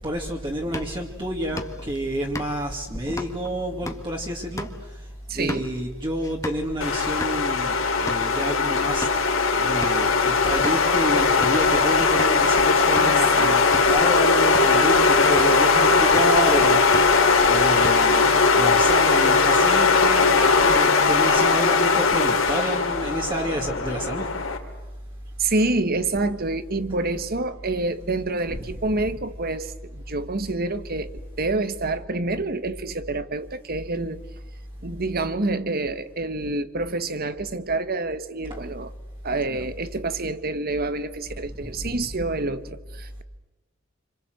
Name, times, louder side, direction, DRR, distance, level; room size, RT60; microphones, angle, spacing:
voice 1, 0.0-5.0 5.3-17.2 17.5-24.3 38.5-38.6 39.5-39.6 41.6-42.0, right 1 dB, 25° right, 2.4 m, -29 dB
sound 1, 0.6-6.7 7.1-7.4 7.7-8.3 8.8-9.3 9.8-10.1 10.6-10.9 11.4-11.7 12.2-12.4 12.8-13.2 13.6-14.0 14.5-14.8 15.4-15.7 16.0-16.4 16.7-17.3 17.6-18.3, left 2 dB, 15° left, 1.6 m, -36 dB
voice 2, 5.3-5.7 13.0-13.6 25.4-34.2 34.8-38.9 39.2-43.2, right 2 dB, 50° right, 1.3 m, -27 dB
sound 2, 6.8-24.6, left 4 dB, 75° left, 3.4 m, -19 dB
28.0 x 26.5 x 7.9 m
head